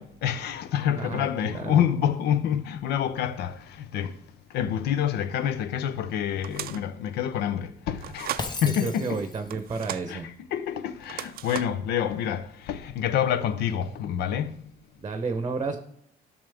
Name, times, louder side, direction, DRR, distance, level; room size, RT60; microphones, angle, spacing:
voice 1, 0.0-4.2 4.5-9.2 10.1-14.5, left 9 dB, 75° left, 0.6 m, -27 dB
voice 2, 1.0-1.8 8.6-10.3 15.0-15.8, right 4 dB, 25° right, 0.9 m, -31 dB
sound 1, 6.4-6.9 8.0-8.5 9.5-10.1 11.0-11.9, right 13 dB, 60° right, 0.4 m, -36 dB
Shatter, 8.4-9.6, left 3 dB, 25° left, 0.8 m, -36 dB
12.5 x 6.3 x 3.5 m
cardioid pair, 110°, 17 cm